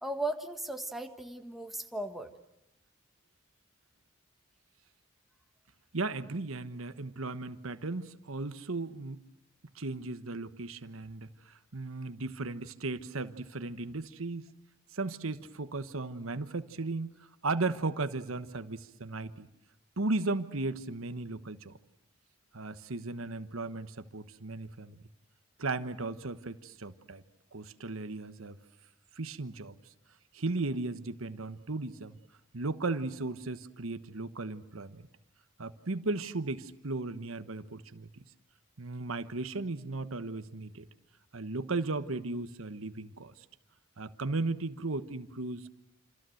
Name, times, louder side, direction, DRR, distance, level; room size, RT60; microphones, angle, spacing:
voice 1, 0.0-2.3, right 1 dB, ahead, 5 dB, 1.5 m, -36 dB
voice 2, 5.9-9.2 9.7-14.5 14.9-19.5 20.0-21.8 22.5-25.0 25.6-27.2 27.5-28.6 29.1-29.8 30.3-32.2 32.5-35.1 35.6-38.2 38.8-40.9 41.3-43.4 44.0-45.7, right 3 dB, 80° right, 11 dB, 1.2 m, -36 dB
27.5 x 27.5 x 7.8 m, 0.84 s
head